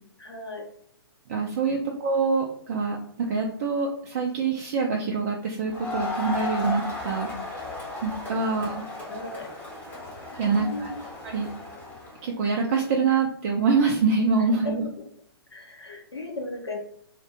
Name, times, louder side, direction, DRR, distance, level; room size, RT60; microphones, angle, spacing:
voice 1, 0.2-0.7 9.1-9.5 10.4-10.9 14.6-14.9 15.5-16.8, left 2 dB, 80° left, 1 dB, 0.6 m, -36 dB
voice 2, 1.3-3.0 3.3-7.3 8.0-8.8 10.4-10.9 11.2-11.5 12.2-14.8, right 4 dB, 35° right, -1 dB, 0.4 m, -25 dB
Crowd, 5.7-12.2, left 3 dB, 10° left, 0.8 m, -35 dB
2.4 x 2.1 x 2.8 m, 0.66 s
figure-of-eight pair, 120°, 13 cm